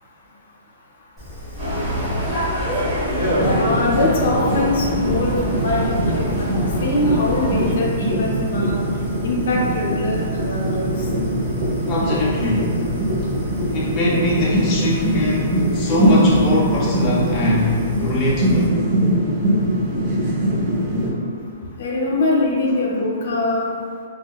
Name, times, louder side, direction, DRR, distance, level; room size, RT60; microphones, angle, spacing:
Fire, 1.2-18.7, equal, 5° right, 0.9 m, -35 dB
sound 1, 1.6-7.7, equal, 25° right, 1.1 m, -25 dB
sound 2, 3.2-21.1, right 1 dB, 60° right, 0.7 m, -22 dB
voice 1, 3.5-8.8 9.2-10.9 21.8-23.6, left 2 dB, 65° left, -2 dB, 0.6 m, -22 dB
voice 2, 11.9-12.8 13.7-18.8, left 2 dB, 20° left, -6 dB, 0.3 m, -22 dB
3.5 x 2.2 x 2.3 m, 2.3 s
hypercardioid pair, 160°, 0 cm